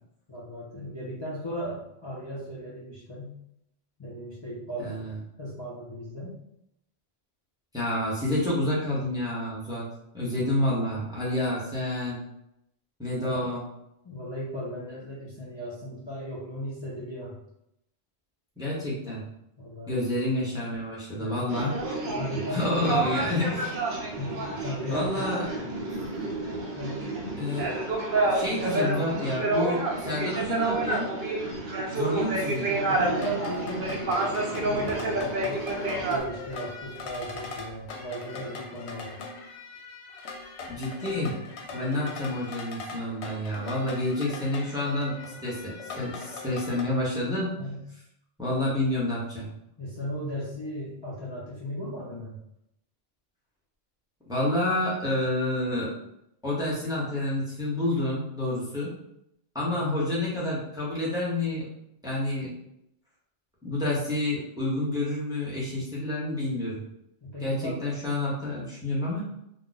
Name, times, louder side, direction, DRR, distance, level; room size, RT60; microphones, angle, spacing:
voice 1, 0.3-3.4 4.0-5.0 5.4-6.3 13.2-13.5 14.0-17.4 18.6-18.8 19.6-20.1 21.2-21.5 21.9-23.4 24.2-25.3 26.8-27.0 32.7-39.2 41.7-42.2 45.3-45.4 47.6-47.8 49.8-52.4 59.6-59.9 67.2-67.8, equal, 30° left, -8 dB, 0.6 m, -37 dB
voice 2, 4.8-5.1 7.7-9.9 10.1-12.2 13.0-13.6 18.6-19.2 19.9-21.8 22.5-23.7 24.9-25.4 27.4-27.9 28.2-31.1 31.9-32.7 40.7-41.4 41.7-47.5 48.4-49.5 54.3-55.9 56.4-58.9 59.5-61.7 62.0-62.5 63.6-66.8 67.4-69.3, left 1 dB, 5° right, -7 dB, 0.7 m, -29 dB
sound 1, 21.5-36.2, right 2 dB, 60° right, 0.6 m, -29 dB
sound 2, 33.2-46.8, left 4 dB, 90° left, 0.9 m, -41 dB
2.4 x 2.2 x 3.9 m, 0.80 s
omnidirectional pair, 1.1 m